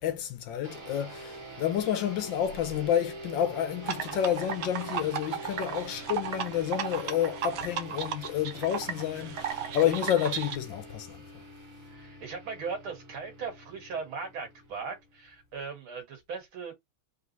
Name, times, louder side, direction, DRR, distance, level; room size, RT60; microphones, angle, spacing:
voice 1, 0.0-11.2, left 10 dB, 70° left, 1.4 m, -30 dB
sound 1, 0.6-15.5, right 1 dB, 45° right, 1.5 m, -45 dB
sound 2, 3.8-10.6, right 8 dB, 65° right, 1.2 m, -35 dB
voice 2, 11.8-16.7, right 5 dB, 85° right, 2.4 m, -38 dB
3.8 x 3.7 x 2.7 m
omnidirectional pair, 2.2 m